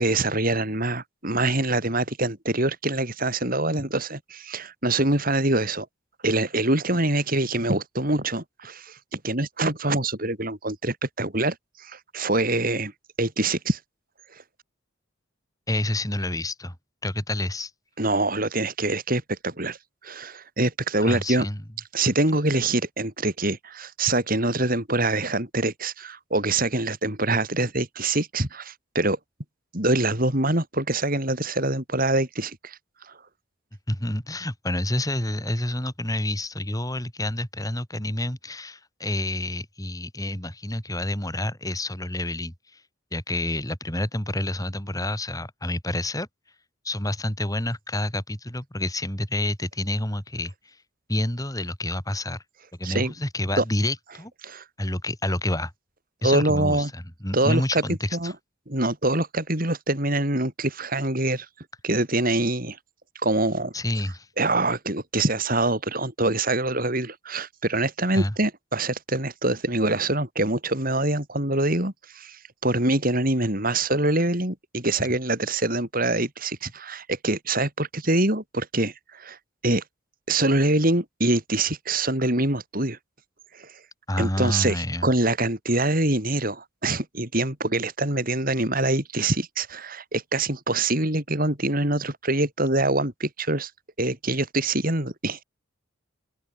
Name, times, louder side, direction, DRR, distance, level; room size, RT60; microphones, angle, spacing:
voice 1, 0.0-5.9 6.2-12.9 13.2-13.8 18.0-19.8 20.0-21.5 21.9-29.2 29.7-32.8 33.1-33.2 52.8-53.1 53.6-53.7 54.4-54.6 56.2-56.9 57.3-58.3 58.7-61.5 61.8-62.8 63.2-63.7 64.4-79.4 79.6-79.8 80.3-83.0 83.5-83.7 84.2-93.7 94.0-95.4, right 2 dB, 45° right, 5.7 m, -25 dB
voice 2, 15.7-16.7 17.0-17.7 21.0-21.6 33.9-42.8 43.1-46.3 46.8-50.8 51.1-52.4 52.8-54.3 54.8-55.7 56.2-58.3 63.7-64.3 68.1-68.3 84.1-85.1, left 1 dB, 15° left, 5.5 m, -28 dB
open air
head